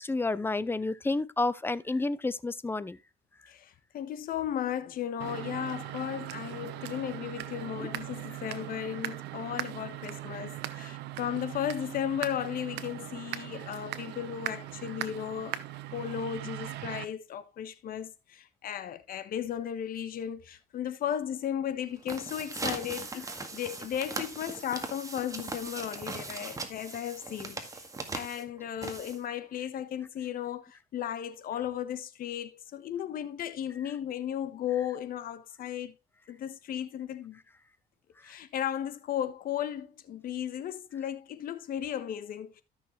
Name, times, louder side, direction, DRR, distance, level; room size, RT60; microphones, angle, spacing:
voice 1, 0.0-3.0 7.8-7.9 10.7-10.9, left 3 dB, 15° left, 0.6 m, -30 dB
voice 2, 3.5-15.6 15.9-23.3 23.5-27.9 28.1-36.0 36.3-37.4 38.2-42.6, left 10 dB, 60° left, 1.3 m, -35 dB
sound 1, 5.2-17.0, right 15 dB, 85° right, 0.9 m, -39 dB
sound 2, 21.9-29.5, right 3 dB, 20° right, 1.9 m, -39 dB
13.0 x 6.5 x 3.1 m
cardioid pair, 110°, 17 cm